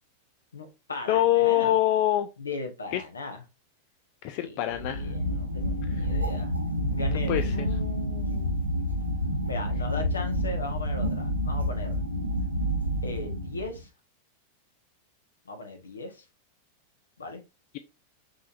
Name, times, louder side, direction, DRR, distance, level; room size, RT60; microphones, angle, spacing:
voice 1, 0.5-1.8 2.4-3.4 4.4-6.5 6.9-8.6 9.5-12.0 13.0-13.9 15.4-16.2 17.2-17.4, left 3 dB, 75° left, 1.1 m, -37 dB
voice 2, 1.1-2.3 2.9-3.0 4.2-5.1 5.9-6.1 7.3-7.5, left 13 dB, 45° left, 0.4 m, -24 dB
sound 1, 4.7-13.8, equal, 80° right, 0.7 m, -29 dB
6.0 x 3.4 x 2.5 m
figure-of-eight pair, 90°, 0 cm